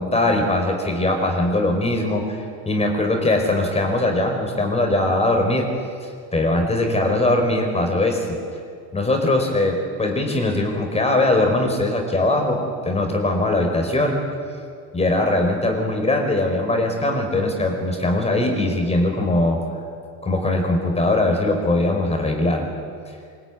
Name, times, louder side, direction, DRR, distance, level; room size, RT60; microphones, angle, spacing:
voice 1, 0.0-5.7 6.0-8.4 8.9-14.2 14.9-19.6 20.2-22.7, left 2 dB, 15° left, 2 dB, 5.1 m, -21 dB
25.0 x 23.5 x 9.6 m, 2.3 s
supercardioid pair, 130°, 44 cm